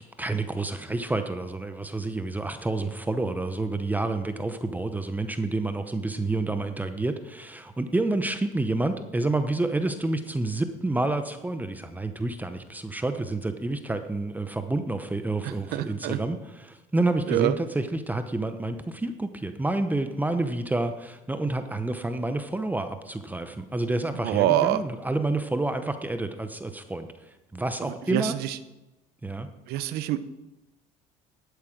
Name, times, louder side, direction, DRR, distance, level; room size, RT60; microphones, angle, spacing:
voice 1, 0.0-27.1 27.5-28.4 29.2-29.5, right 2 dB, 10° right, 8 dB, 0.8 m, -29 dB
voice 2, 15.4-16.2 17.3-17.6 24.2-24.8 27.8-28.6 29.7-30.2, right 13 dB, 70° right, 14 dB, 0.8 m, -26 dB
11.0 x 8.3 x 6.2 m, 1.0 s
cardioid pair, 105°, 16 cm